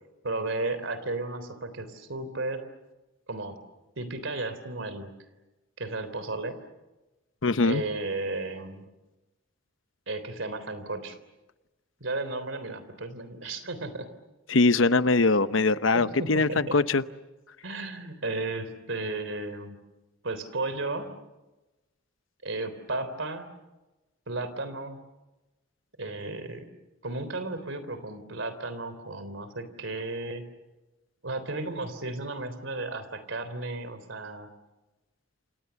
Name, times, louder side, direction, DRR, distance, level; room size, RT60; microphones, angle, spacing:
voice 1, 0.2-2.6 3.3-3.6 4.0-5.1 5.8-6.6 7.6-8.9 10.1-11.2 12.0-14.1 15.2-15.3 15.9-16.8 17.6-19.8 20.2-21.1 22.4-23.5 24.3-25.0 26.0-26.6 27.0-30.4 31.2-34.5, right 2 dB, 70° right, 12 dB, 3.5 m, -34 dB
voice 2, 7.4-7.8 14.5-17.0, left 3 dB, 70° left, 13 dB, 0.9 m, -22 dB
29.0 x 27.5 x 7.1 m, 1.1 s
head